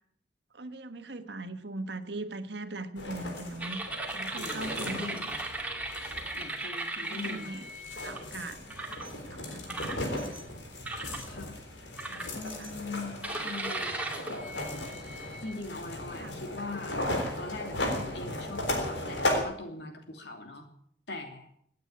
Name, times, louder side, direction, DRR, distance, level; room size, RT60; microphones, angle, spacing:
voice 1, 0.5-3.8 4.1-5.3 7.0-7.6 7.9-10.1 12.1-12.7 16.2-16.4, right 2 dB, 75° right, 8 dB, 1.5 m, -41 dB
sound 1, 3.0-19.4, left 1 dB, 90° left, 3.9 m, -36 dB
sound 2, 3.6-8.2 8.7-9.1 9.7-10.4 10.9-11.2 12.0-12.7 13.2-15.5, right 2 dB, 10° right, 2.3 m, -37 dB
voice 2, 4.4-5.3 6.4-7.8 9.9-10.7 11.3-11.6 12.3-14.0 14.3-14.9 15.4-17.0 17.4-20.7 21.1-21.5, left 3 dB, 70° left, 4 dB, 3.0 m, -42 dB
17.5 x 9.3 x 8.7 m, 0.67 s
head